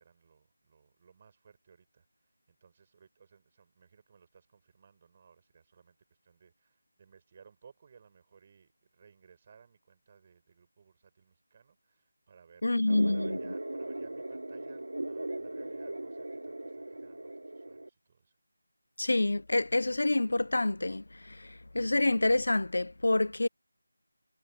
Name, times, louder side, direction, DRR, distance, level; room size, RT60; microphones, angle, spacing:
voice 1, 0.0-6.0 6.2-18.4, right 6 dB, 25° right, 6.4 m, -60 dB
voice 2, 12.6-13.4 19.0-23.5, left 2 dB, 70° left, 0.3 m, -27 dB
sound 1, 12.9-17.9, right 1 dB, 90° right, 1.2 m, -38 dB
figure-of-eight pair, 170°, 0 cm